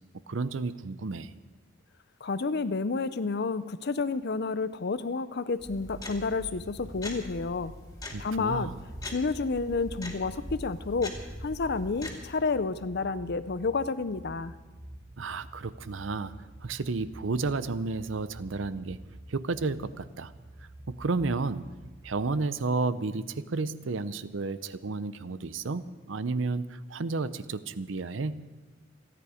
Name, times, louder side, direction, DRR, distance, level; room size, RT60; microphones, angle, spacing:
voice 1, 0.3-1.3 8.1-8.8 15.2-16.3 16.6-19.0 19.3-20.3 20.9-21.7 22.0-28.5, right 3 dB, 75° right, 15 dB, 0.7 m, -32 dB
voice 2, 2.2-7.7 8.2-8.7 9.1-11.2 11.4-14.5, left 4 dB, 60° left, 14 dB, 0.6 m, -30 dB
sound 1, 5.6-12.3, left 1 dB, 20° left, 2.6 m, -42 dB
sound 2, 8.9-22.3, right 1 dB, 30° right, 0.8 m, -49 dB
28.0 x 9.9 x 5.0 m, 1.2 s
head